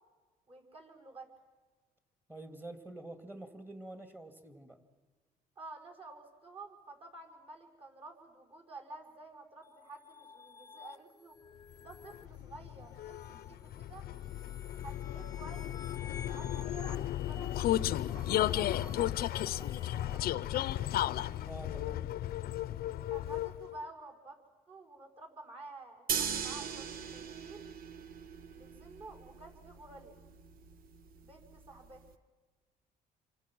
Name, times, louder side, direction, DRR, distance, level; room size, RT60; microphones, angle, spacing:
voice 1, 0.5-1.3 5.6-11.4 11.8-14.1 14.8-20.9 23.1-24.4 24.7-27.7 28.5-30.2 31.2-32.0, right 2 dB, 35° right, 3 dB, 5.7 m, -51 dB
voice 2, 2.3-4.8 21.5-22.1, right 1 dB, 10° right, 7 dB, 2.6 m, -47 dB
sound 1, 9.6-20.3, left 5 dB, 20° left, 0.9 m, -52 dB
Vehicle, 11.9-23.8, left 13 dB, 65° left, 0.7 m, -34 dB
sound 2, 26.1-32.1, right 7 dB, 60° right, 1.5 m, -40 dB
28.5 x 24.5 x 6.3 m, 1.4 s
cardioid pair, 110°, 17 cm